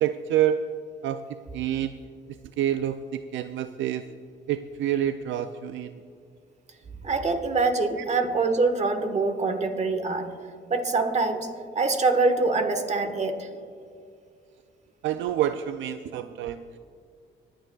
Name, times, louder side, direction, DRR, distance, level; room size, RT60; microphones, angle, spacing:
voice 1, 0.0-0.6 1.0-1.2 1.5-1.9 2.6-4.0 4.5-5.9 15.0-16.6, right 11 dB, 75° right, 10 dB, 0.4 m, -27 dB
voice 2, 7.0-10.3 10.7-11.5 11.7-13.5, right 3 dB, 35° right, 6 dB, 1.3 m, -24 dB
25.5 x 8.9 x 2.3 m, 2.3 s
cardioid pair, 90°, 20 cm